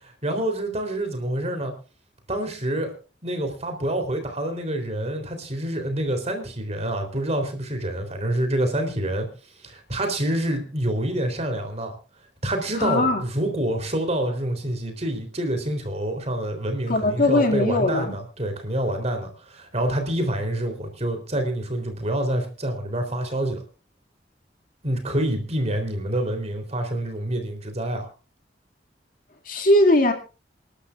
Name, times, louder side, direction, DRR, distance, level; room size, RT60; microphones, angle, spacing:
voice 1, 0.0-1.7 2.3-2.9 3.2-9.3 9.6-11.9 12.4-23.6 24.8-28.1, right 1 dB, 35° right, 5 dB, 3.7 m, -27 dB
voice 2, 12.8-13.2 16.9-18.2 29.5-30.1, left 1 dB, 50° left, 4 dB, 2.4 m, -20 dB
27.5 x 12.0 x 2.5 m, 0.33 s
head